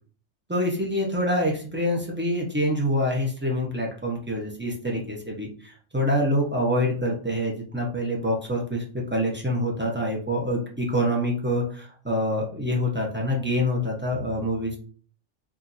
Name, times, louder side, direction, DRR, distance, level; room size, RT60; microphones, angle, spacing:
voice 1, 0.5-14.8, equal, 10° right, -2 dB, 0.8 m, -26 dB
4.8 x 2.7 x 2.7 m, 0.43 s
omnidirectional pair, 1.3 m